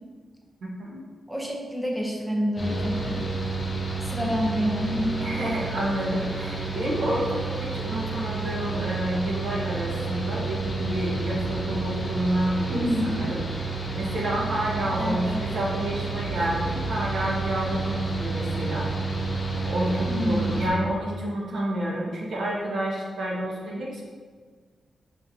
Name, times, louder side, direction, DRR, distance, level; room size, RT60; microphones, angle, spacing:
voice 1, 1.3-3.2 4.0-5.1 12.7-13.2 15.0-15.3 20.1-20.6, equal, 5° right, -1 dB, 0.8 m, -27 dB
Mechanical fan, 2.6-20.7, right 3 dB, 25° left, 1.2 m, -30 dB
voice 2, 5.2-13.4 13.9-18.9 19.6-24.0, right 1 dB, 85° right, -4 dB, 1.5 m, -29 dB
6.2 x 5.5 x 2.8 m, 1.5 s
wide cardioid pair, 175°, 0 cm